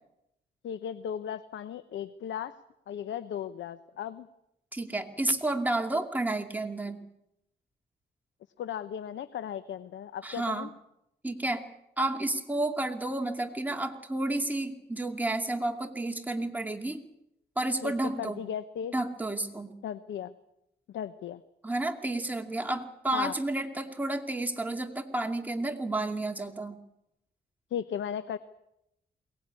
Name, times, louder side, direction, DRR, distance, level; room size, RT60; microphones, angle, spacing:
voice 1, 0.6-2.5 2.9-4.3 8.6-10.7 17.8-17.9 18.2-18.9 19.8-20.3 20.9-21.4 23.1-23.3 27.7-28.4, left 9 dB, 90° left, 13 dB, 0.9 m, -36 dB
voice 2, 4.7-7.0 10.2-10.7 11.2-11.6 12.0-17.0 17.6-18.4 18.9-19.7 21.6-26.8, right 2 dB, 10° right, 4 dB, 2.5 m, -31 dB
22.5 x 18.5 x 9.7 m, 0.84 s
cardioid pair, 115°, 19 cm